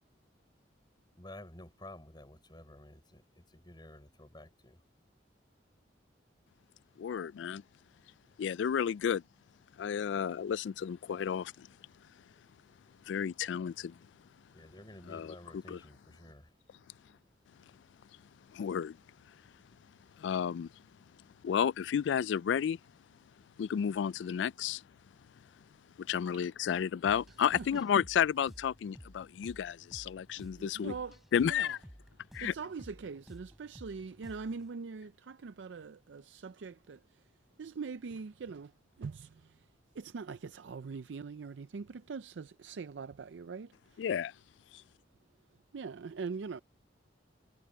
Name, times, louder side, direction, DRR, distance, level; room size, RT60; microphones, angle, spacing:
voice 1, 1.2-4.8 14.5-16.5, left 1 dB, 25° left, 5.2 m, -52 dB
voice 2, 7.0-7.6 8.4-9.2 9.8-11.7 13.1-14.0 15.1-15.8 18.5-19.0 20.2-20.7 21.4-22.8 23.6-24.8 26.0-31.0 31.3-31.8 32.3-32.5 44.0-44.3, left 8 dB, 75° left, 0.3 m, -32 dB
sound 1, 27.0-34.7, equal, ahead, 4.5 m, -54 dB
voice 3, 30.4-31.2 31.4-31.7 32.4-37.0 37.6-38.7 39.0-39.3 40.0-43.7 45.7-46.6, right 5 dB, 80° right, 0.5 m, -42 dB
head